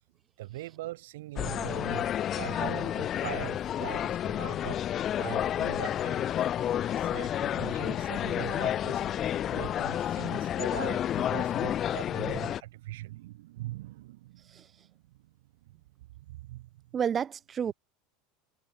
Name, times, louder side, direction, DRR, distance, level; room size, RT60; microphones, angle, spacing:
voice 1, 0.4-4.8 5.2-6.3 7.0-15.0 16.0-16.7, right 17 dB, 90° right, 5.6 m, -42 dB
sound 1, 1.4-12.6, left 10 dB, 30° left, 0.4 m, -30 dB
voice 2, 16.9-17.7, right 8 dB, 25° right, 0.5 m, -30 dB
supercardioid pair, 155°, 0 cm